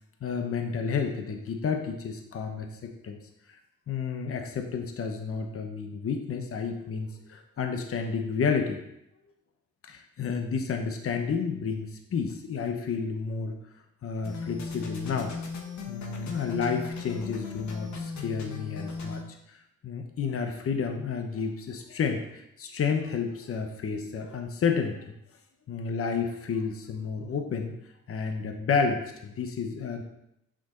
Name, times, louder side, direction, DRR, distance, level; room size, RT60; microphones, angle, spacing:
voice 1, 0.2-3.2 3.9-8.8 9.8-13.6 14.0-15.3 15.9-19.2 19.5-19.6 19.8-25.1 25.7-27.8 28.1-30.0, left 5 dB, 50° left, 4 dB, 1.0 m, -31 dB
sound 1, 14.2-19.2, left 5 dB, 65° left, 1.4 m, -37 dB
6.9 x 6.3 x 3.9 m, 0.81 s
cardioid pair, 90°, 30 cm